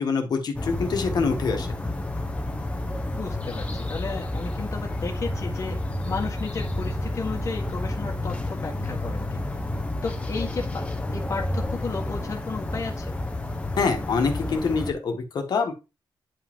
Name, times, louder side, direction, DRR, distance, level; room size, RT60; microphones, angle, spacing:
voice 1, 0.0-1.7 13.8-15.7, left 4 dB, 55° left, 3 dB, 1.6 m, -25 dB
sound 1, 0.5-14.9, left 1 dB, 15° left, 1.0 m, -30 dB
voice 2, 3.1-9.6 10.0-13.1, left 4 dB, 35° left, 0 dB, 1.4 m, -34 dB
9.8 x 5.2 x 3.7 m, 0.27 s
wide cardioid pair, 175°, 8 cm